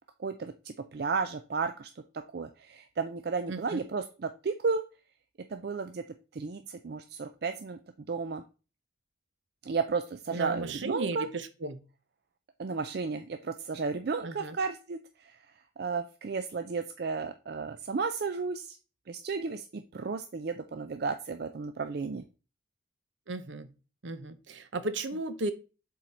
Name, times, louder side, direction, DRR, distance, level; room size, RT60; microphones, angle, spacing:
voice 1, 0.2-1.9 2.3-4.8 5.5-6.0 6.3-7.8 8.1-8.4 9.6-11.3 12.6-15.4 15.8-18.8 19.1-22.2, right 4 dB, 50° right, 8 dB, 0.4 m, -33 dB
voice 2, 3.5-3.8 10.3-11.8 14.2-14.6 23.3-23.7 24.0-25.5, right 2 dB, 70° right, 11 dB, 0.8 m, -35 dB
7.4 x 3.9 x 4.2 m, 0.33 s
head